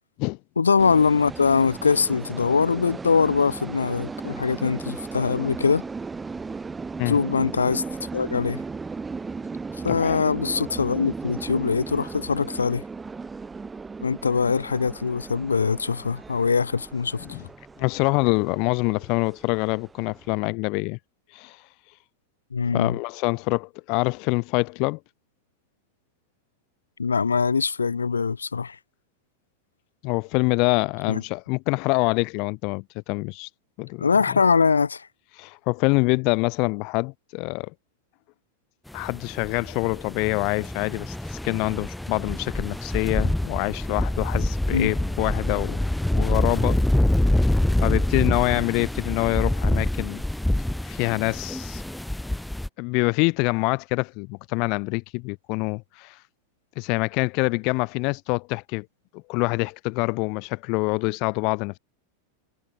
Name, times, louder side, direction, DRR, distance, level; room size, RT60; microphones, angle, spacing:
voice 1, 0.6-5.8 7.0-7.8 8.1-8.6 9.8-12.8 14.0-17.2 22.5-23.0 27.0-28.8 31.1-31.2 34.0-35.1 44.7-44.9, left 5 dB, 75° left, 1.2 m, -22 dB
sound 1, 0.8-20.3, right 4 dB, 15° right, 7.8 m, -36 dB
voice 2, 9.9-10.3 17.2-17.5 17.8-21.0 21.3-21.6 22.7-25.0 30.0-33.5 33.8-34.4 35.4-37.7 38.9-45.8 46.1-46.8 47.3-47.5 47.8-50.2 50.8-51.8 52.8-56.2 56.8-58.9 59.1-61.8, left 30 dB, 45° left, 1.0 m, -25 dB
sound 2, 39.0-52.7, left 1 dB, 5° left, 1.6 m, -25 dB
figure-of-eight pair, 90°, 0 cm